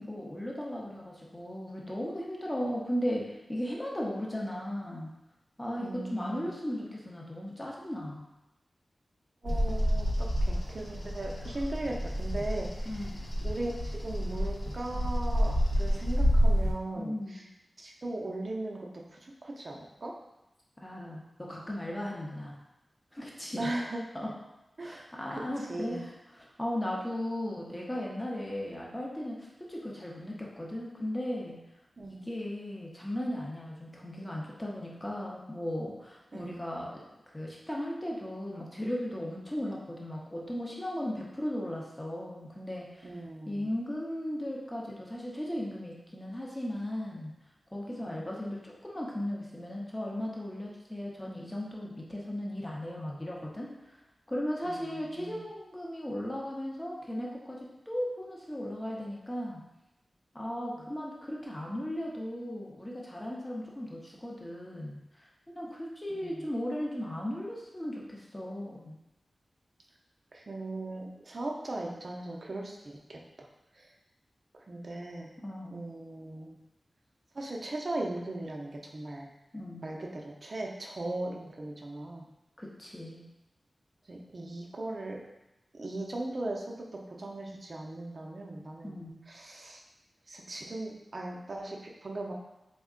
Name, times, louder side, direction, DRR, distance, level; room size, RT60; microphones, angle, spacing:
voice 1, 0.0-5.1 5.6-8.3 12.9-13.2 16.9-17.4 20.8-22.6 23.1-23.7 24.1-24.3 24.8-31.6 32.0-43.1 43.5-47.3 47.7-54.0 54.3-57.6 57.9-59.6 60.3-69.0 75.4-75.8 79.5-80.0 82.6-83.2 88.8-89.2, left 1 dB, 20° left, -3 dB, 0.7 m, -36 dB
voice 2, 5.8-6.5 9.4-13.1 13.4-17.4 17.8-20.1 23.6-24.0 24.8-26.0 32.0-32.2 36.3-36.6 43.0-43.7 48.0-48.2 54.7-55.5 60.8-60.9 66.1-66.5 70.3-73.5 73.7-73.9 74.5-75.3 75.7-76.6 77.3-79.3 79.8-82.3 84.1-85.2 85.7-88.9 89.3-89.8 90.3-92.3, right 2 dB, 50° right, -1 dB, 0.5 m, -38 dB
Bird vocalization bird call bird song, 9.4-16.7, equal, 50° left, 0.8 m, -29 dB
3.5 x 2.1 x 3.6 m, 0.96 s
wide cardioid pair, 80°, 0 cm